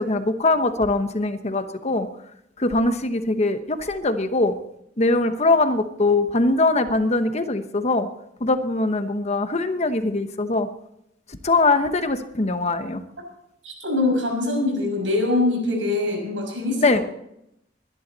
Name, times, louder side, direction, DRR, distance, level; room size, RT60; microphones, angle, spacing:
voice 1, 0.0-2.1 2.6-4.6 5.0-8.1 8.4-10.7 11.4-13.0 16.8-17.0, left 2 dB, 35° left, 9 dB, 1.0 m, -22 dB
voice 2, 13.6-16.9, left 2 dB, 85° right, 2 dB, 6.2 m, -23 dB
21.5 x 11.5 x 4.1 m, 0.78 s
head